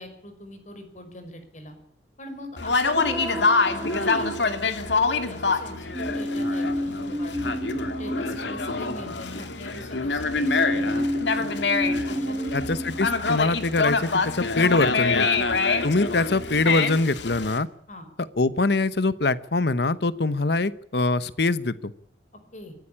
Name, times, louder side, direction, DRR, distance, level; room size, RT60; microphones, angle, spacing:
voice 1, 0.0-1.8 2.2-7.5 7.9-12.8 17.9-18.1 22.5-22.8, left 1 dB, 45° left, 8 dB, 5.3 m, -42 dB
Conversation, 2.6-17.6, left 4 dB, 85° left, 2.3 m, -26 dB
sound 1, 2.9-5.1 5.9-9.6 10.4-13.2, equal, 15° right, 2.3 m, -30 dB
voice 2, 12.5-15.3 15.8-17.7 18.4-21.9, left 3 dB, 65° left, 16 dB, 1.0 m, -23 dB
23.5 x 14.5 x 8.7 m, 0.70 s
head